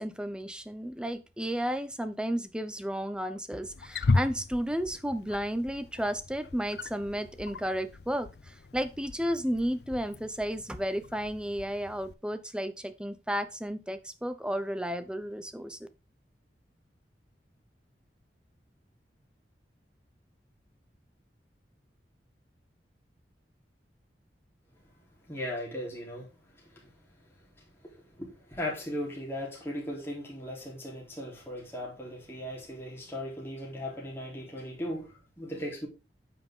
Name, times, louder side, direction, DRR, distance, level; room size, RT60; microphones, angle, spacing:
voice 1, 0.0-15.9, equal, 5° right, 0.7 m, -33 dB
Wild animals, 3.6-12.1, left 3 dB, 65° left, 0.5 m, -36 dB
voice 2, 25.3-26.3 27.8-35.9, left 1 dB, 15° left, 3.6 m, -37 dB
9.1 x 5.8 x 3.7 m
head